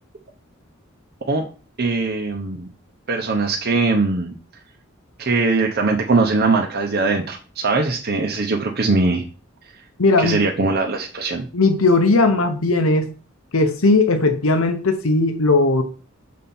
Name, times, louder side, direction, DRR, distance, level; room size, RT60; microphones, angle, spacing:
voice 1, 1.8-2.7 3.1-4.3 5.2-9.2 10.2-11.5, right 3 dB, 50° right, 1 dB, 0.8 m, -21 dB
voice 2, 10.0-10.5 11.5-13.1 13.5-15.8, left 3 dB, 85° left, 6 dB, 0.9 m, -17 dB
6.4 x 4.3 x 5.5 m, 0.37 s
head